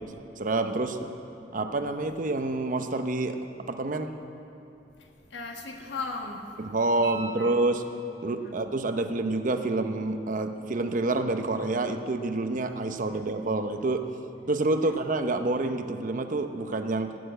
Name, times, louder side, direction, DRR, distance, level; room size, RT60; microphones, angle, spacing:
voice 1, 0.4-1.0 1.5-3.4 3.7-4.1 6.6-7.8 8.2-14.1 14.5-17.2, right 2 dB, 45° right, 7 dB, 0.8 m, -28 dB
voice 2, 5.0-6.7 7.4-7.6 8.4-8.6 14.8-14.9, left 3 dB, 75° left, 2 dB, 1.7 m, -38 dB
sound 1, 7.0-8.4 11.1-11.2, right 3 dB, 70° right, 4.4 m, -42 dB
18.0 x 7.0 x 8.9 m, 2.9 s
head